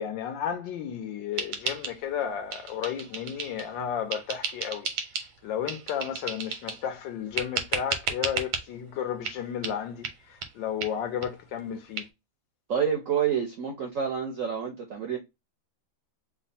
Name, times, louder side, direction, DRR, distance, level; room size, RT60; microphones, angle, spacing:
voice 1, 0.0-4.9 5.4-12.0, left 8 dB, 75° left, 1.3 m, -33 dB
sound 1, 1.4-2.2 2.5-3.7 4.1-5.3 5.7-6.9 7.4-8.6 9.3-9.4 9.6-9.8 10.0-10.2 10.4-10.5 10.8-10.9 11.2-11.3 11.6-11.7 12.0-12.1, right 6 dB, 85° right, 1.6 m, -33 dB
voice 2, 12.7-15.2, right 7 dB, 65° right, 0.8 m, -28 dB
3.6 x 2.1 x 4.1 m
omnidirectional pair, 2.2 m